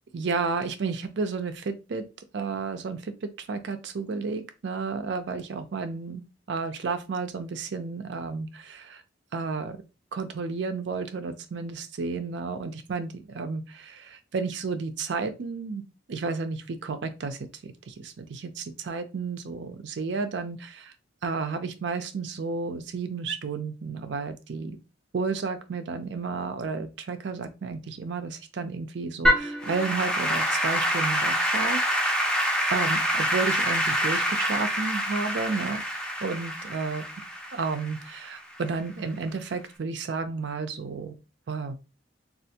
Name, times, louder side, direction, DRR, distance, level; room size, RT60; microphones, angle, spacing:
voice 1, 0.1-2.0 2.3-6.2 6.5-9.0 9.3-9.8 10.1-15.8 16.1-20.9 21.2-24.8 25.1-31.9 32.7-35.8 36.2-37.1 37.5-41.2 41.5-41.8, right 4 dB, 65° right, 9 dB, 0.4 m, -32 dB
Applause / Keyboard (musical), 29.2-38.6, equal, 5° left, 0.5 m, -26 dB
3.3 x 2.4 x 2.8 m, 0.30 s
head